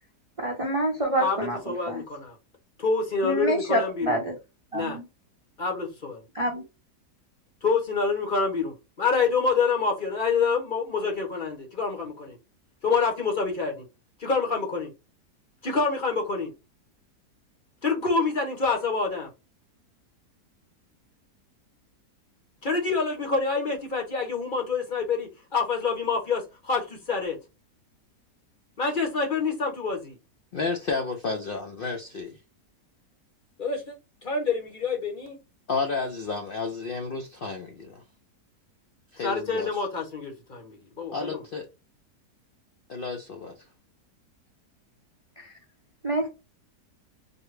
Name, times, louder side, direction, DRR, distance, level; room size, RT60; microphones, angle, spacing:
voice 1, 0.4-1.6 1.9-2.0 3.2-4.3 4.7-5.0 6.3-6.6 46.0-46.3, right 1 dB, 35° right, 0.5 m, -26 dB
voice 2, 1.2-2.4 2.8-4.2 4.7-5.0 5.6-6.2 7.6-12.4 12.8-13.8 14.2-14.9 15.6-16.5 17.8-19.3 22.6-27.4 28.8-30.2 33.6-33.9 34.2-35.4 39.2-41.4, left 4 dB, 35° left, 0.9 m, -27 dB
voice 3, 30.5-32.4 35.7-38.0 39.1-39.8 41.1-41.7 42.9-43.6, left 4 dB, 65° left, 0.5 m, -31 dB
4.5 x 2.2 x 3.2 m
omnidirectional pair, 1.8 m